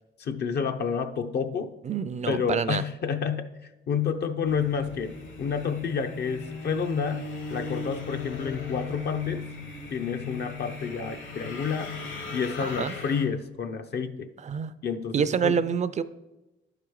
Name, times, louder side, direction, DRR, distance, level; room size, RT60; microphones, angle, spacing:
voice 1, 0.2-1.7 2.3-9.5 9.9-12.0 12.3-14.3 14.8-15.6, left 6 dB, 55° left, 0.5 m, -29 dB
voice 2, 1.8-2.8 12.6-12.9 14.4-14.7 15.1-16.0, right 7 dB, 35° right, 0.4 m, -27 dB
sound 1, 4.5-13.3, left 4 dB, 75° left, 1.9 m, -38 dB
11.0 x 4.9 x 4.7 m
cardioid pair, 90°, 20 cm